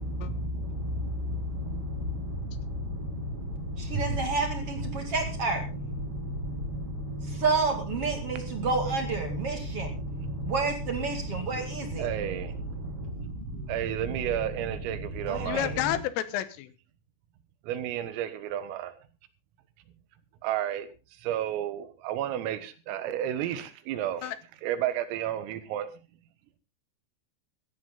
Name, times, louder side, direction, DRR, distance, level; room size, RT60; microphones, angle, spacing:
voice 1, 0.0-16.0, right 2 dB, 45° right, 2.1 m, -31 dB
voice 2, 12.0-12.6 13.7-15.7 17.6-19.0 20.4-20.9 21.2-24.3 24.6-25.9, right 11 dB, 85° right, 4.0 m, -32 dB
voice 3, 15.4-16.7 24.2-24.4, left 13 dB, 80° left, 3.6 m, -30 dB
16.0 x 13.5 x 3.9 m
omnidirectional pair, 5.8 m